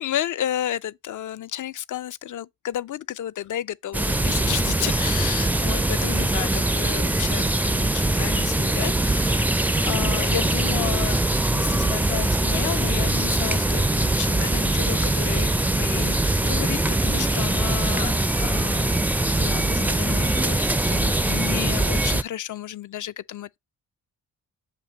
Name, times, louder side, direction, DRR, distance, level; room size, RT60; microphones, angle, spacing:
voice 1, 0.0-11.2 11.5-19.1 19.4-23.6, left 11 dB, 50° left, 0.5 m, -32 dB
sound 1, 3.9-22.2, right 2 dB, 5° right, 0.4 m, -22 dB
7.5 x 2.8 x 5.1 m
supercardioid pair, 50°, 39 cm